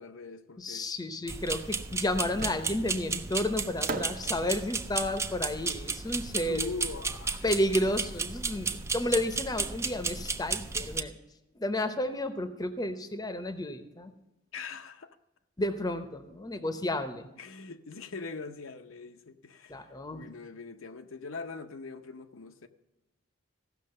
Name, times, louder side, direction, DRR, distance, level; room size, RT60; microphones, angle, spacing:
voice 1, 0.0-0.9 6.4-7.5 14.5-15.2 17.4-22.7, left 4 dB, 75° left, 0.7 m, -42 dB
voice 2, 0.6-6.6 7.4-11.2 11.6-14.1 15.6-17.3 19.7-20.3, left 1 dB, 20° left, 0.7 m, -32 dB
sound 1, 1.3-11.0, right 4 dB, 15° right, 0.4 m, -34 dB
Fireworks, 2.4-3.1 3.9-7.0, right 3 dB, 40° right, 0.7 m, -41 dB
15.5 x 6.4 x 6.5 m
head